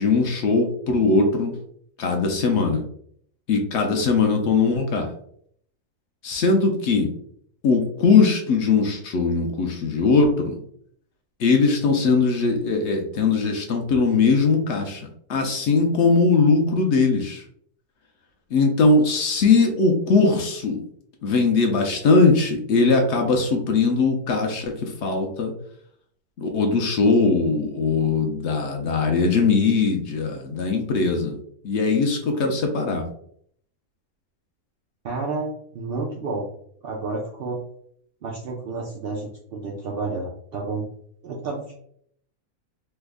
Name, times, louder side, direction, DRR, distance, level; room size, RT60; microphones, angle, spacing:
voice 1, 0.0-1.5 2.0-2.8 3.5-5.1 6.2-7.1 7.6-10.6 11.4-17.4 18.5-20.8 21.2-25.5 26.4-31.4 31.6-33.0, left 4 dB, 65° left, 3 dB, 0.7 m, -20 dB
voice 2, 35.0-36.5 36.8-37.6 38.2-40.9 41.2-41.7, right 3 dB, 90° right, -2 dB, 0.5 m, -30 dB
3.2 x 2.1 x 3.4 m, 0.67 s
omnidirectional pair, 1.6 m